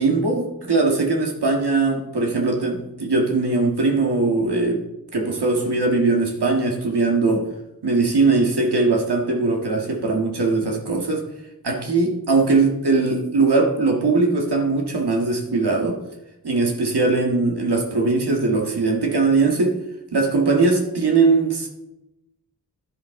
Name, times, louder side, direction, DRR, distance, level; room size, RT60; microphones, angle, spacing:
voice 1, 0.0-4.8 5.1-7.5 7.8-11.3 11.6-16.0 16.4-19.8 20.1-21.7, right 3 dB, 85° right, 1 dB, 1.7 m, -20 dB
10.5 x 10.5 x 3.7 m, 0.93 s
wide cardioid pair, 60°, 39 cm